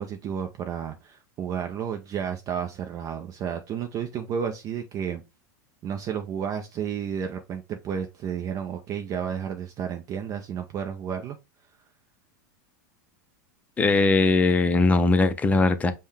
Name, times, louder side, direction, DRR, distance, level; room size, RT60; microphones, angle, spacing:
voice 1, 0.0-5.2 5.8-11.4, right 8 dB, 35° right, 0.5 m, -32 dB
voice 2, 13.8-15.9, left 3 dB, 15° left, 0.5 m, -20 dB
5.3 x 2.2 x 3.3 m
hypercardioid pair, 115°, 10 cm